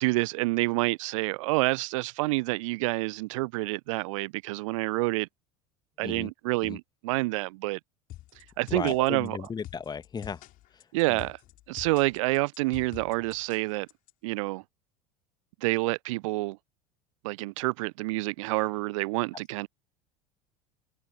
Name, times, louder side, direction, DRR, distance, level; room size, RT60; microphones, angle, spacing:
voice 1, 0.0-5.3 6.0-7.8 8.4-9.4 10.9-11.4 11.7-13.9 14.2-14.6 15.6-16.6 17.2-19.7, right 23 dB, 55° right, 0.4 m, -28 dB
sound 1, 8.1-14.1, left 15 dB, 45° left, 2.6 m, -47 dB
voice 2, 8.7-10.4 10.7-11.2, left 6 dB, 20° left, 1.3 m, -36 dB
figure-of-eight pair, 75°, 19 cm